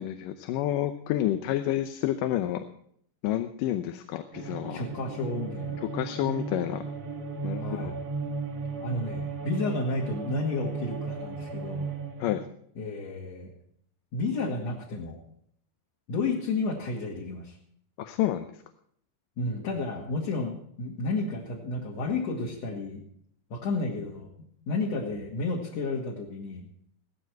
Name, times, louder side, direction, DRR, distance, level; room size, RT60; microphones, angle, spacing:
voice 1, 0.0-2.6 3.2-4.8 5.8-6.8 7.4-7.9 12.2-12.4 18.0-18.5, left 13 dB, 85° left, 8 dB, 2.5 m, -29 dB
sound 1, 4.3-12.5, right 4 dB, 55° right, 1.0 m, -35 dB
voice 2, 4.7-5.8 7.6-8.0 8.8-11.9 12.8-13.5 14.1-15.2 16.1-17.6 19.4-23.0 23.5-24.3 24.7-26.7, left 3 dB, 55° left, -2 dB, 3.2 m, -31 dB
17.0 x 14.0 x 4.7 m, 0.66 s
omnidirectional pair, 3.8 m